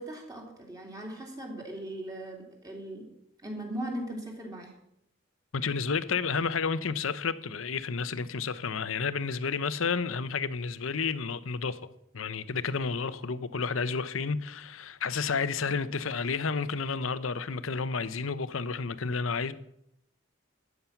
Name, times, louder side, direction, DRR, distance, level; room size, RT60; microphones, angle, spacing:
voice 1, 0.0-3.1 3.4-4.7, right 1 dB, 20° right, 3.0 m, -39 dB
voice 2, 5.5-11.8 12.1-19.5, left 5 dB, 80° left, 0.8 m, -31 dB
13.0 x 9.4 x 5.8 m
head